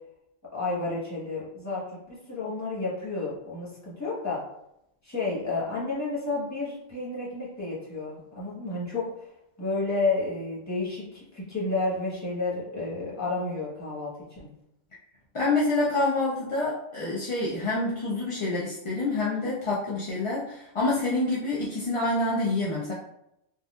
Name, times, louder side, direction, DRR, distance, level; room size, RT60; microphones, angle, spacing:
voice 1, 0.5-4.4 5.0-9.3 9.6-14.5 19.4-19.5, left 3 dB, 15° left, -8 dB, 1.3 m, -31 dB
voice 2, 15.3-22.9, left 2 dB, 45° left, -6 dB, 0.4 m, -27 dB
4.0 x 2.4 x 2.4 m, 0.81 s
omnidirectional pair, 1.2 m